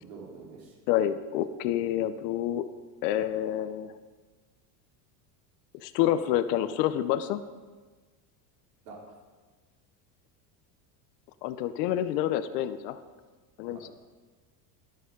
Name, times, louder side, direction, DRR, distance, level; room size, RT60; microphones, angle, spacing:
voice 1, 0.0-0.7 8.8-9.1 13.7-13.9, right 4 dB, 80° right, -3 dB, 3.8 m, -46 dB
voice 2, 0.9-2.6 3.0-3.9 5.8-7.4 11.4-13.0 13.6-13.9, left 11 dB, 75° left, 11 dB, 0.8 m, -28 dB
13.0 x 11.0 x 3.8 m, 1.3 s
supercardioid pair, 120°, 48 cm